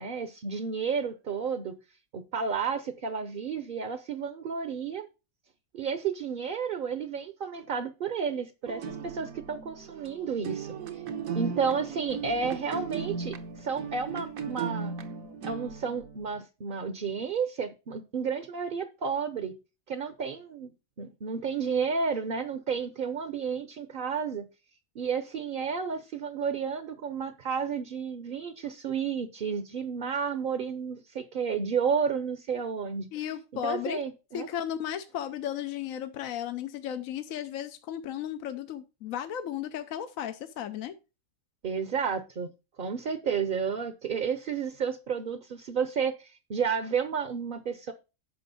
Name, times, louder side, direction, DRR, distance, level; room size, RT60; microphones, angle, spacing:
voice 1, 0.0-1.8 2.1-5.1 5.7-11.0 11.3-14.9 15.4-19.5 19.9-20.7 21.0-24.5 24.9-33.1 33.6-34.5 41.6-42.5 42.8-47.9, right 6 dB, 45° right, 0.8 m, -31 dB
sound 1, 8.7-16.4, right 6 dB, 80° right, 1.4 m, -37 dB
voice 2, 33.1-34.0 34.3-40.9, left 10 dB, 75° left, 1.1 m, -35 dB
9.9 x 6.2 x 4.1 m
omnidirectional pair, 1.5 m